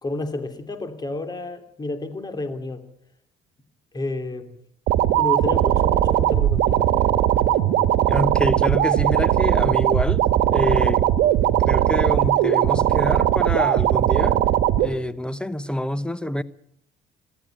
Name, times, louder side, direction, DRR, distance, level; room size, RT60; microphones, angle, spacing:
voice 1, 0.0-2.8 3.9-4.5 5.2-6.9, left 2 dB, 25° left, 2.9 m, -30 dB
sound 1, 4.9-14.9, right 12 dB, 80° right, 1.6 m, -19 dB
voice 2, 8.1-11.0 11.6-14.4 14.8-16.4, equal, 5° left, 0.9 m, -26 dB
24.0 x 14.5 x 9.1 m
cardioid pair, 110°, 17 cm